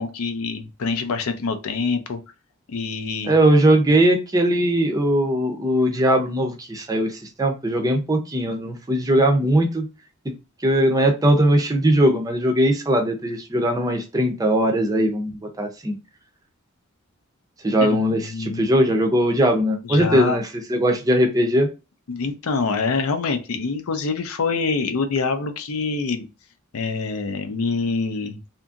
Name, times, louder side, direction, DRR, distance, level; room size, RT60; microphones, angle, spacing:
voice 1, 0.0-2.2 2.7-3.3 17.8-18.6 19.9-20.4 22.1-26.3 26.7-28.4, left 4 dB, 90° left, 8 dB, 0.5 m, -25 dB
voice 2, 3.3-9.9 10.6-15.3 15.6-15.9 17.6-20.4 20.7-21.7, right 1 dB, 15° right, 4 dB, 0.4 m, -19 dB
2.8 x 2.6 x 2.3 m, 0.30 s
head